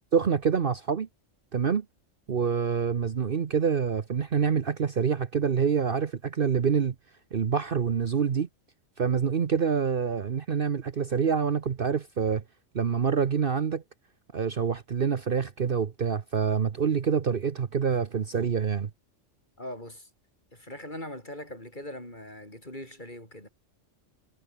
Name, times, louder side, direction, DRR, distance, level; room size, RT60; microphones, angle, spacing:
voice 1, 0.1-1.1 1.5-1.8 2.3-6.9 7.3-8.5 9.0-12.4 12.7-13.8 14.3-18.9, right 6 dB, 50° right, 1.1 m, -26 dB
voice 2, 19.6-20.1 20.5-23.5, left 1 dB, 40° left, 8.1 m, -41 dB
omnidirectional pair, 1.3 m